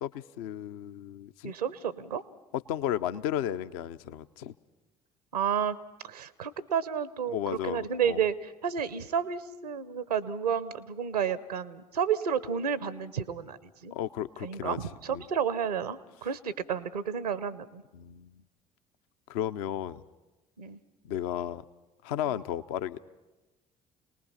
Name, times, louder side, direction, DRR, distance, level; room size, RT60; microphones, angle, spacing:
voice 1, 0.0-1.5 2.7-4.5 7.3-8.2 13.9-15.3 17.9-18.4 19.3-20.0 21.0-21.6 22.0-23.0, left 10 dB, 65° left, 12 dB, 0.6 m, -34 dB
voice 2, 1.4-2.2 5.3-5.8 6.0-7.4 7.6-14.0 14.4-17.8 20.6-20.8 22.2-22.4, right 7 dB, 80° right, 17 dB, 0.8 m, -31 dB
28.0 x 19.5 x 5.7 m, 1.1 s
figure-of-eight pair, 50°, 20 cm